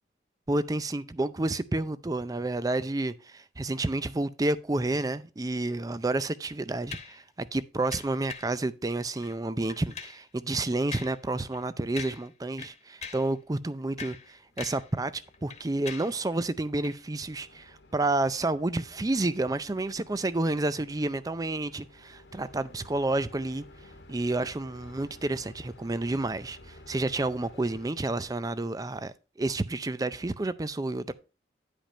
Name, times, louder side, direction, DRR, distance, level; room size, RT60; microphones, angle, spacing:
voice 1, 0.5-23.6 24.1-31.1, right 2 dB, 20° right, 0.5 m, -30 dB
sound 1, 6.9-7.2 7.9-8.6 9.1-9.4 9.7-10.2 10.9-11.2 11.5-11.7 12.0-12.3 12.6-13.3 13.8-14.9 15.2-16.2 16.8-17.0, left 5 dB, 40° left, 1.3 m, -42 dB
sound 2, 14.2-27.9, left 1 dB, 80° left, 1.4 m, -53 dB
10.5 x 5.2 x 4.3 m
head